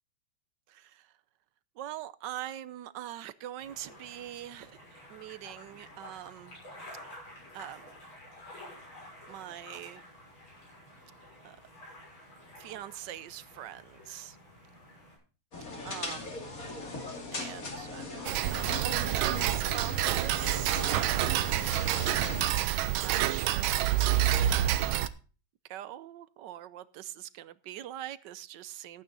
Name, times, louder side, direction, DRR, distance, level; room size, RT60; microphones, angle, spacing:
voice 1, 0.7-1.1 1.8-6.6 7.5-7.9 9.3-10.0 11.4-11.6 12.6-14.4 15.8-16.4 17.3-21.5 23.0-24.8 25.7-29.0, right 12 dB, 70° right, 1.2 m, -43 dB
sound 1, 3.6-15.2, left 1 dB, 80° left, 7.3 m, -50 dB
sound 2, 15.5-22.5, left 3 dB, 45° left, 2.9 m, -39 dB
Tick-tock, 18.3-25.1, right 12 dB, 85° right, 1.6 m, -28 dB
14.5 x 9.1 x 4.0 m
omnidirectional pair, 2.2 m